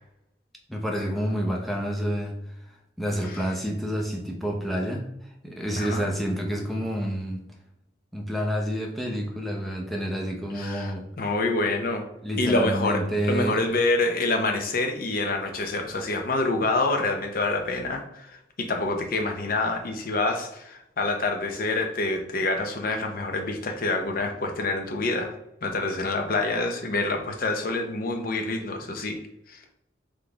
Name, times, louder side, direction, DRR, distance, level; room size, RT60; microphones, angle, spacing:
voice 1, 0.7-2.4 3.0-7.5 8.1-11.1 12.2-13.6, equal, ahead, 0.7 m, -29 dB
voice 2, 5.8-6.1 10.5-12.0 12.4-13.0 13.3-25.3 25.6-29.2 29.5-29.6, left 2 dB, 50° left, 0.7 m, -27 dB
3.9 x 3.2 x 3.4 m
head